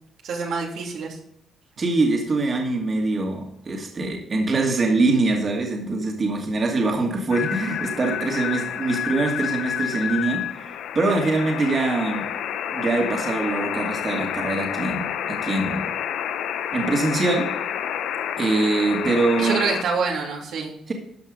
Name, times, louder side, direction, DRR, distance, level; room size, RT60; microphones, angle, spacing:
voice 1, 0.2-1.2 19.4-20.7, right 5 dB, 75° right, -1 dB, 2.8 m, -26 dB
voice 2, 1.8-10.5 10.9-12.3 12.7-15.9 16.7-17.5 18.4-19.6 20.9-21.0, right 3 dB, 40° right, 1 dB, 2.3 m, -23 dB
sound 1, 7.3-19.8, left 9 dB, 80° left, 0.7 m, -29 dB
13.0 x 5.6 x 5.3 m, 0.77 s
cardioid pair, 90°, 0 cm